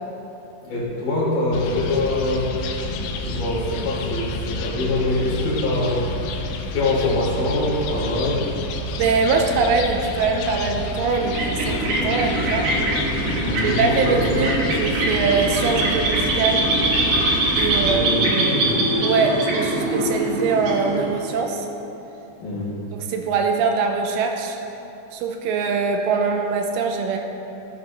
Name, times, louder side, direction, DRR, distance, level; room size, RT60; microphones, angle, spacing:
voice 1, 0.6-2.5 2.8-6.0 6.7-8.5 13.3-14.6 17.6-18.8 22.4-22.9, left 2 dB, 55° left, -9 dB, 4.2 m, -24 dB
sound 1, 1.5-18.0, left 2 dB, 80° left, 2.2 m, -30 dB
voice 2, 9.0-12.7 13.6-16.7 17.6-18.6 19.0-21.7 22.9-24.6 25.1-27.2, right 4 dB, 85° right, 3 dB, 2.8 m, -23 dB
sound 2, 11.0-21.4, right 1 dB, 60° right, 2.3 m, -23 dB
15.0 x 9.6 x 3.0 m, 3.0 s
omnidirectional pair, 5.2 m